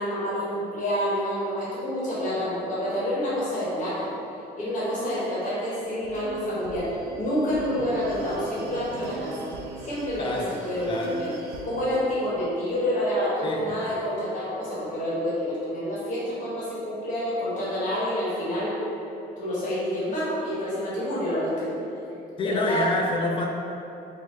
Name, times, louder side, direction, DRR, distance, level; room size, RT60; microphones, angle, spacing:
voice 1, 0.0-4.1 4.6-9.5 9.8-11.3 11.6-18.8 19.4-21.7 22.4-22.8, equal, 50° left, -8 dB, 1.1 m, -28 dB
sound 1, 5.8-11.8, right 3 dB, 80° right, 0.4 m, -41 dB
voice 2, 10.2-10.5 10.9-11.2 13.4-13.8 22.4-23.5, left 2 dB, 30° left, 1 dB, 0.4 m, -28 dB
3.1 x 2.2 x 3.1 m, 2.8 s
cardioid pair, 110°, 17 cm